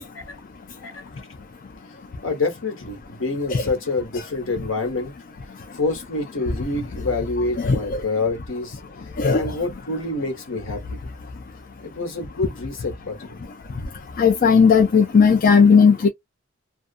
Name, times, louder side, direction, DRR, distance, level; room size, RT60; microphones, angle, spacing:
voice 1, 2.2-5.1 5.7-8.8 9.3-11.0 11.8-13.4, left 3 dB, 70° left, 1.2 m, -27 dB
voice 2, 7.6-8.0 9.2-9.4 14.2-16.1, left 5 dB, 45° left, 0.4 m, -15 dB
2.5 x 2.3 x 2.4 m
head